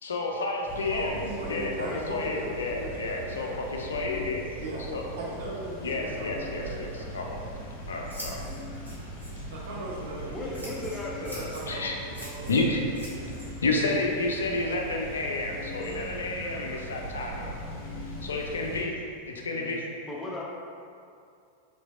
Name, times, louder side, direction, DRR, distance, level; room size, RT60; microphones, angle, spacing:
voice 1, 0.0-1.2 1.5-1.7 2.1-4.4 4.9-5.0 5.8-7.4 7.9-8.5 10.5-10.7 11.7-12.0 12.5-12.8 13.6-17.5 18.2-18.9 19.3-19.9, left 2 dB, 70° left, 0 dB, 0.4 m, -30 dB
voice 2, 0.6-3.6 4.6-7.1 9.5-10.8 11.2-13.3 13.6-13.8 19.4-19.9, right 1 dB, 60° right, -5 dB, 0.8 m, -39 dB
sound 1, 0.7-18.8, right 1 dB, 50° left, 0.8 m, -40 dB
Scissors, 7.2-15.3, equal, 85° right, 1.0 m, -47 dB
voice 3, 10.3-11.4 20.0-20.4, left 2 dB, 15° left, -4 dB, 0.6 m, -36 dB
3.8 x 3.1 x 2.3 m, 2.4 s
figure-of-eight pair, 90°, 0 cm